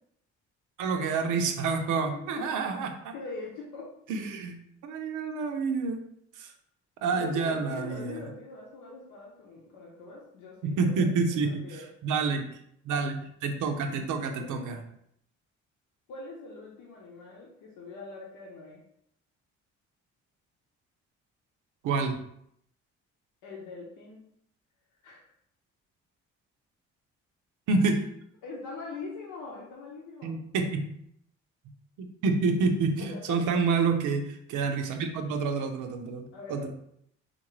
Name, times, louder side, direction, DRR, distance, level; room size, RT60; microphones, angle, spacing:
voice 1, 0.8-3.1 4.1-6.0 6.4-6.5 7.0-8.2 10.6-12.5 12.8-14.8 21.8-22.2 27.7-28.0 30.2-30.8 32.0-36.7, right 4 dB, 85° right, 5 dB, 0.6 m, -28 dB
voice 2, 2.1-2.5 3.1-3.9 7.1-11.9 14.3-14.7 16.1-18.8 23.4-24.2 25.0-25.2 28.4-30.4 33.0-33.4 36.3-36.8, left 3 dB, 80° left, -3 dB, 0.8 m, -42 dB
3.7 x 2.5 x 3.1 m, 0.70 s
cardioid pair, 90°, 30 cm